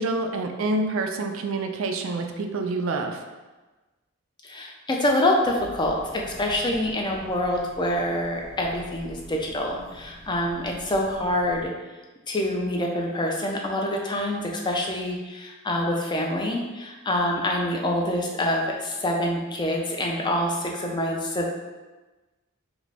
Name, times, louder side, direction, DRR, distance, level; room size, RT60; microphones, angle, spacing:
voice 1, 0.0-3.2, right 2 dB, 65° right, 5 dB, 0.4 m, -27 dB
voice 2, 4.4-11.7 12.3-21.5, left 1 dB, 20° left, 0 dB, 0.4 m, -26 dB
sound 1, 5.4-11.7, equal, 75° left, 0.9 m, -46 dB
4.8 x 2.0 x 3.4 m, 1.2 s
head